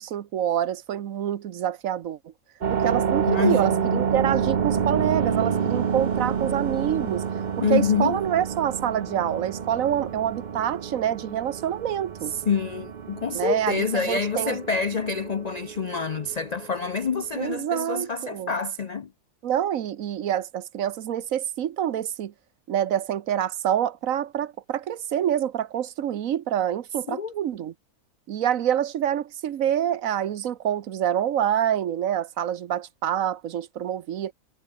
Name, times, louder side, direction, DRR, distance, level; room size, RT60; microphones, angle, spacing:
voice 1, 0.0-2.2 2.7-7.2 7.7-12.3 13.3-14.6 17.3-18.5 19.4-22.3 22.7-27.7 28.3-34.3, right 10 dB, 65° right, 1.2 m, -26 dB
sound 1, 2.6-17.6, right 7 dB, 40° right, 0.7 m, -29 dB
voice 2, 3.3-4.0 7.6-8.2 12.3-19.1 27.1-27.3, left 5 dB, 80° left, 0.3 m, -27 dB
omnidirectional pair, 1.6 m